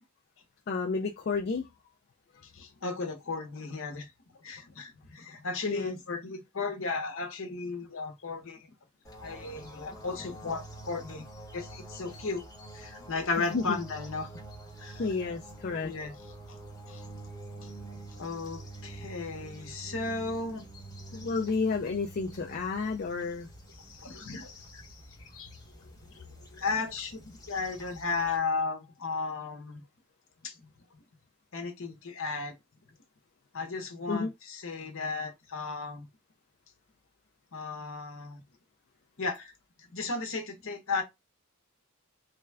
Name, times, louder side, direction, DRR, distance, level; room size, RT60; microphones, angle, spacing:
voice 1, 0.7-1.7 5.6-5.9 13.5-13.8 15.0-15.9 21.1-23.5 26.2-26.3 26.5-26.6 34.1-34.3, left 4 dB, 45° left, 0.4 m, -31 dB
voice 2, 2.4-4.1 4.4-8.7 9.2-11.2 11.5-14.3 14.8-15.1 15.8-16.1 16.9-17.0 17.6-17.7 18.2-20.6 23.8-25.0 25.3-25.5 26.1-26.2 26.6-29.8 30.4-30.6 31.5-32.5 33.5-36.1 37.5-38.4 39.2-39.5 39.9-41.0, left 4 dB, 60° left, 0.9 m, -35 dB
sound 1, 9.0-28.4, right 2 dB, 15° left, 1.0 m, -47 dB
3.3 x 2.3 x 3.3 m
head